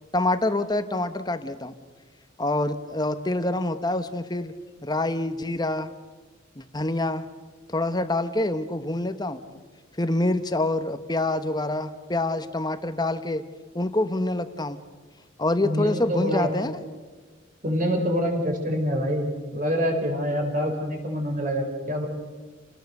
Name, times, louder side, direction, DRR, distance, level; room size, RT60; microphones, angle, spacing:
voice 1, 0.1-1.7 2.4-4.5 4.8-5.9 6.6-7.2 7.7-9.6 10.0-13.4 13.7-14.8 15.4-16.8, left 2 dB, 20° left, 10 dB, 1.1 m, -26 dB
voice 2, 15.6-16.5 17.6-22.1, equal, 40° right, 3 dB, 4.8 m, -26 dB
29.0 x 19.0 x 6.7 m, 1.3 s
head